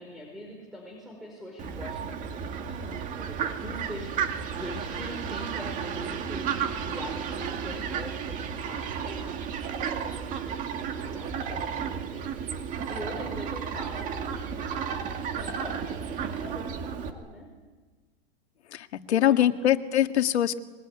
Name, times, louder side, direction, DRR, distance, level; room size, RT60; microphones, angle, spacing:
voice 1, 0.0-4.1 4.6-6.5 6.9-10.6 11.0-12.3 12.9-14.7 15.3-17.5 19.1-19.7, equal, ahead, -1 dB, 4.9 m, -43 dB
Fowl, 1.6-17.1, right 7 dB, 25° right, 2.1 m, -33 dB
voice 2, 18.7-20.6, left 11 dB, 90° left, 8 dB, 1.8 m, -23 dB
24.5 x 22.5 x 9.8 m, 1.4 s
supercardioid pair, 160°, 32 cm